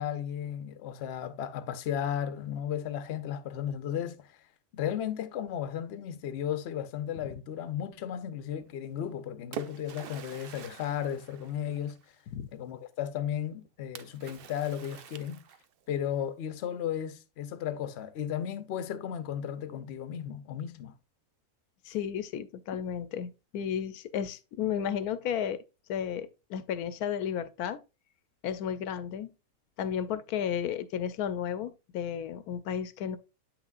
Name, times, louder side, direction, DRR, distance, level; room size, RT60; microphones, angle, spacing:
voice 1, 0.0-4.4 4.7-12.0 12.5-15.4 15.9-20.9, left 9 dB, 55° left, 0.8 m, -34 dB
Splash splatter, 9.0-12.2 14.0-15.9, right 9 dB, 80° right, 0.5 m, -46 dB
voice 2, 21.8-25.6 25.9-27.8 28.4-29.3 29.8-33.2, left 8 dB, 80° left, 1.1 m, -33 dB
8.5 x 6.0 x 2.4 m
omnidirectional pair, 1.6 m